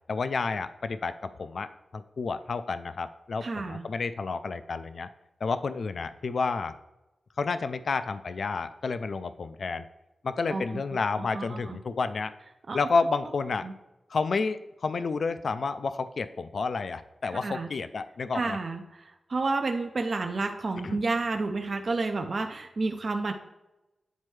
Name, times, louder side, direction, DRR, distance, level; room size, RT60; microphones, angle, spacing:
voice 1, 0.1-5.1 5.4-6.8 7.4-9.8 10.2-12.3 12.7-13.7 14.1-18.6 20.8-21.0, left 4 dB, 55° left, 12 dB, 0.3 m, -30 dB
voice 2, 3.4-3.9 10.5-10.8 11.3-11.8 12.7-12.8 13.6-13.7 17.3-17.7 18.3-23.3, right 3 dB, 45° right, 5 dB, 0.4 m, -30 dB
9.2 x 4.3 x 3.2 m, 0.99 s
wide cardioid pair, 155°, 0 cm